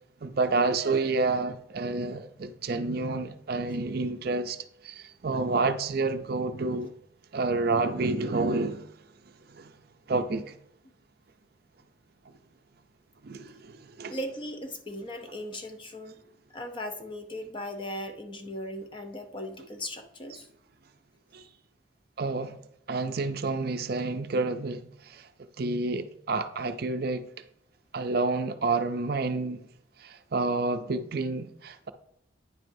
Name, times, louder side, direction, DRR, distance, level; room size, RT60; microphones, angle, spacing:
voice 1, 0.2-4.6 4.8-6.9 7.3-8.9 9.5-9.7 10.1-10.5 13.2-14.2 21.3-21.4 22.2-22.6 22.9-25.3 25.6-27.2 27.9-29.6 30.0-31.9, right 3 dB, 50° right, 0.5 m, -29 dB
voice 2, 14.1-16.2 16.5-20.5, left 1 dB, 25° left, 0.6 m, -38 dB
9.4 x 7.7 x 2.6 m
head